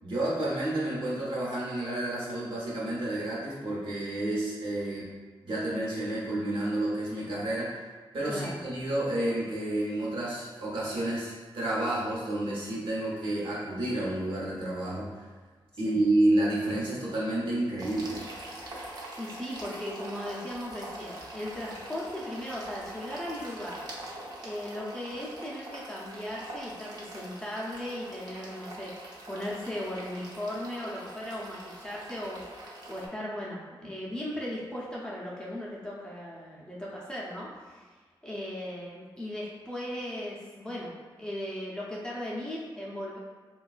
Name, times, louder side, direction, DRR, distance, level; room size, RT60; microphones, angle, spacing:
voice 1, 0.0-5.0 5.4-7.7 8.1-15.2 15.8-18.2, right 1 dB, 70° right, -6 dB, 0.9 m, -30 dB
voice 2, 8.3-8.6 15.8-16.0 18.7-23.9 24.4-37.8 38.2-43.2, left 1 dB, 10° left, -6 dB, 0.5 m, -37 dB
sound 1, 17.8-33.1, right 1 dB, 50° right, 0.5 m, -43 dB
3.5 x 2.2 x 2.4 m, 1.4 s
wide cardioid pair, 120°, 9 cm